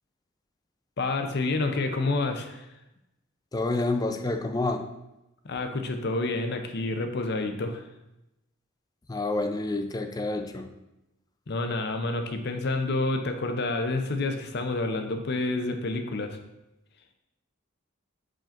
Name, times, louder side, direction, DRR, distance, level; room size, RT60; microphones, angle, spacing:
voice 1, 1.0-2.7 5.4-7.8 11.5-16.4, left 2 dB, 60° left, 7 dB, 0.7 m, -29 dB
voice 2, 3.5-4.9 9.1-10.7, left 2 dB, 20° left, 7 dB, 0.4 m, -28 dB
5.1 x 3.8 x 5.8 m, 0.93 s
head